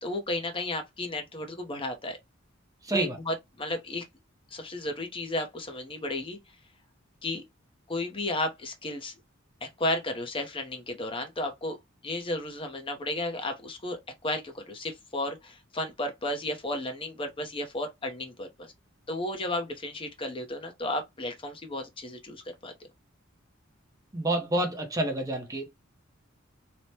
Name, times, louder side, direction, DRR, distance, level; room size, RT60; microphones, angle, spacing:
voice 1, 0.0-2.2 2.9-4.0 4.5-6.4 7.2-7.4 7.9-9.1 9.6-11.8 12.0-18.7 19.1-22.7, left 1 dB, 25° left, 0.6 m, -33 dB
voice 2, 2.8-3.2 24.1-25.7, right 1 dB, 15° right, 0.5 m, -28 dB
3.2 x 2.1 x 2.7 m
head